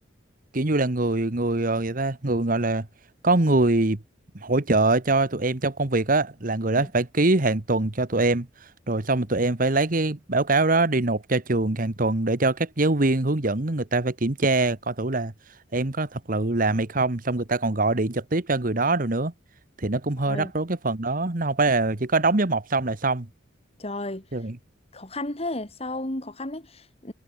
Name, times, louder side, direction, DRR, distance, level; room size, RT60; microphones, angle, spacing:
voice 1, 0.5-2.9 3.2-4.0 4.3-8.5 8.9-15.3 15.7-19.3 19.8-23.3 24.3-24.6, right 2 dB, 45° right, 1.4 m, -23 dB
voice 2, 20.2-20.5 23.8-24.2 24.9-27.1, left 2 dB, 35° left, 3.2 m, -33 dB
head